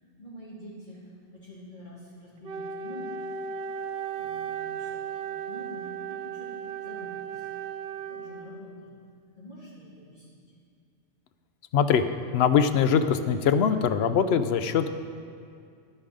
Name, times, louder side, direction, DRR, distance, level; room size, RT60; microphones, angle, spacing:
voice 1, 0.2-3.2 3.5-3.8 4.2-5.0 5.3-7.5 8.1-8.9 9.4-10.4, equal, 45° left, -9 dB, 2.7 m, -46 dB
Wind instrument woodwind instrument, 2.4-8.8, right 7 dB, 65° right, 0.8 m, -36 dB
voice 2, 11.7-12.0 12.3-14.9, left 7 dB, 70° left, 10 dB, 0.8 m, -22 dB
11.0 x 8.9 x 4.9 m, 2.3 s
omnidirectional pair, 1.1 m